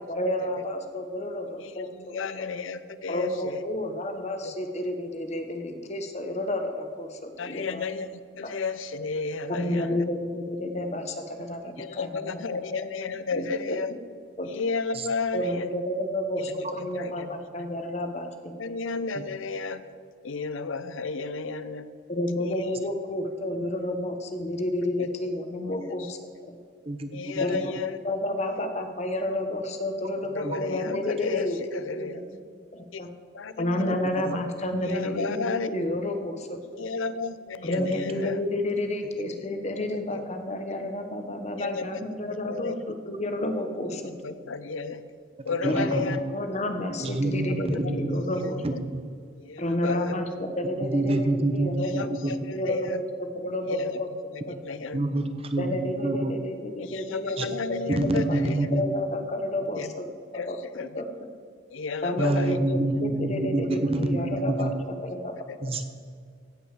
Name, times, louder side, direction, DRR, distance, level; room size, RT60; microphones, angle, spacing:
voice 1, 0.1-2.2 3.1-7.8 8.4-8.5 9.5-12.4 13.3-13.4 14.4-14.5 15.3-16.4 16.7-18.8 22.1-26.2 26.5-26.6 27.4-27.7 28.0-31.6 32.0-32.2 32.7-33.1 33.6-36.8 37.6-44.1 45.6-48.8 49.6-52.1 52.5-53.0 53.4-54.1 54.5-54.8 55.6-58.4 58.7-60.1 60.3-60.6 60.9-61.0 62.0-64.7 65.1-65.3, left 1 dB, 35° left, 6 dB, 1.1 m, -30 dB
voice 2, 1.6-3.6 4.4-4.5 7.4-10.0 11.6-14.0 14.4-15.7 16.4-17.3 17.6-17.7 18.6-19.9 20.2-21.9 22.4-22.7 25.0-25.1 25.9-26.1 27.1-28.0 28.5-28.6 30.3-32.2 32.9-33.0 33.3-34.0 34.8-35.7 36.8-38.4 40.1-40.2 41.6-42.8 43.8-45.1 45.4-46.3 47.5-48.8 49.3-50.2 51.8-53.0 53.7-54.0 54.3-55.0 56.8-58.6 59.7-60.0 60.3-61.0 61.7-62.6 64.4-64.5 65.5-65.6, left 4 dB, 85° left, 13 dB, 0.7 m, -33 dB
voice 3, 26.9-27.4 30.4-30.6 34.3-34.4 37.8-37.9 38.1-38.2 45.6-46.2 47.0-48.4 48.6-49.0 50.8-52.3 54.9-56.3 57.4-57.5 57.9-58.9 62.2-64.7 65.6-65.8, right 2 dB, 30° right, 8 dB, 0.8 m, -27 dB
16.0 x 5.5 x 7.2 m, 2.1 s
head